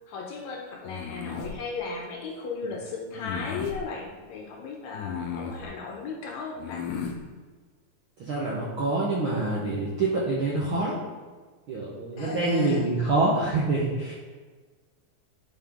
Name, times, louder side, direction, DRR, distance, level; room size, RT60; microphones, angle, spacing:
voice 1, 0.1-6.9 12.2-12.9, left 4 dB, 70° left, 0 dB, 2.0 m, -35 dB
sound 1, 0.8-1.6 3.1-3.8 4.9-5.7 6.6-7.2, left 7 dB, 85° left, 2.4 m, -34 dB
voice 2, 8.2-10.9 11.7-14.1, right 2 dB, 65° right, -6 dB, 1.3 m, -26 dB
10.5 x 4.4 x 3.6 m, 1.4 s
omnidirectional pair, 3.7 m